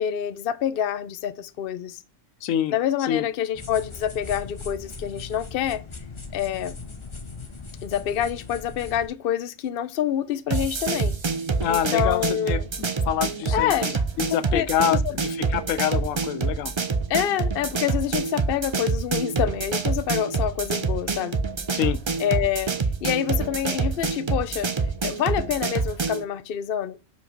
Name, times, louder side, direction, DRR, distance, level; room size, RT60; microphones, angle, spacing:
voice 1, 0.0-2.0 2.7-5.8 6.3-6.8 7.8-11.2 11.7-12.7 13.5-13.9 14.5-15.1 17.1-21.4 22.2-22.7 23.0-24.7 25.0-27.0, left 10 dB, 55° left, 0.7 m, -27 dB
voice 2, 2.4-2.7 3.1-3.2 11.6-13.7 14.3-16.7 21.7-22.0, left 10 dB, 90° left, 1.0 m, -26 dB
sound 1, 3.5-9.1, left 4 dB, 25° left, 0.8 m, -39 dB
sound 2, 10.5-26.2, right 4 dB, 40° right, 0.4 m, -27 dB
5.6 x 4.9 x 5.9 m
omnidirectional pair, 1.3 m